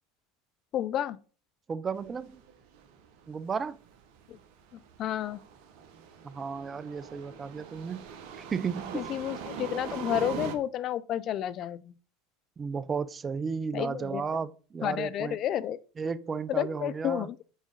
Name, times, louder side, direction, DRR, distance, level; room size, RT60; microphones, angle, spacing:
voice 1, 0.7-1.2 4.3-4.4 5.0-5.4 8.9-11.9 13.7-14.2 14.8-15.8 16.5-17.4, left 11 dB, 45° left, 0.4 m, -31 dB
voice 2, 1.7-2.4 3.3-3.8 6.2-8.0 8.4-9.1 12.6-15.4 16.0-17.3, right 5 dB, 25° right, 0.4 m, -34 dB
sound 1, 2.0-10.6, right 6 dB, 60° right, 1.0 m, -41 dB
6.2 x 4.9 x 3.9 m
hypercardioid pair, 75°, 0 cm